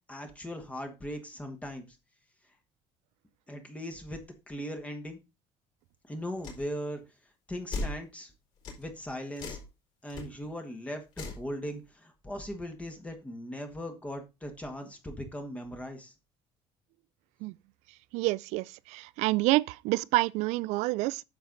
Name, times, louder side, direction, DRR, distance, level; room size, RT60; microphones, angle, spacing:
voice 1, 0.1-2.0 3.5-4.2 4.5-5.2 6.1-7.0 7.5-8.3 8.8-9.6 10.0-16.1, equal, 10° left, 1.5 m, -39 dB
sound 1, 6.4-6.6 7.7-8.0 8.6-8.8 9.4-9.7 10.1-10.2 11.1-11.4, left 2 dB, 40° left, 4.3 m, -36 dB
voice 2, 18.1-21.2, right 20 dB, 70° right, 0.5 m, -28 dB
9.4 x 7.0 x 4.0 m
cardioid pair, 160°, 12 cm